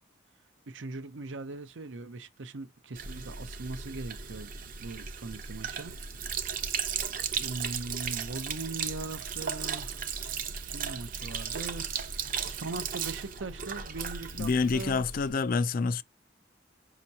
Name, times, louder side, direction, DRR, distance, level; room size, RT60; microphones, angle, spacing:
voice 1, 0.7-4.5 4.8-6.0 7.3-10.0 10.6-15.1, right 3 dB, 80° right, 0.7 m, -40 dB
Sink (filling or washing), 3.0-15.3, right 7 dB, 50° right, 0.7 m, -36 dB
voice 2, 14.4-16.0, left 4 dB, 50° left, 0.3 m, -27 dB
5.4 x 2.9 x 2.7 m
head